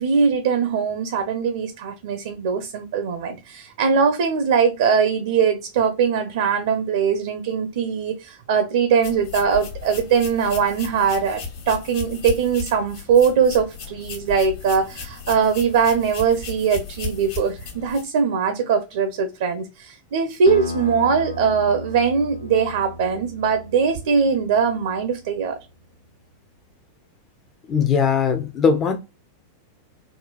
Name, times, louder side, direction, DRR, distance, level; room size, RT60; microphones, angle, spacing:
voice 1, 0.0-25.6, right 6 dB, 55° right, 0.4 m, -21 dB
sound 1, 9.0-18.0, left 5 dB, 55° left, 1.0 m, -35 dB
sound 2, 20.5-25.6, left 1 dB, 75° left, 0.6 m, -35 dB
voice 2, 27.7-29.0, left 6 dB, 25° left, 0.4 m, -19 dB
3.7 x 2.2 x 2.3 m
figure-of-eight pair, 90°, 0 cm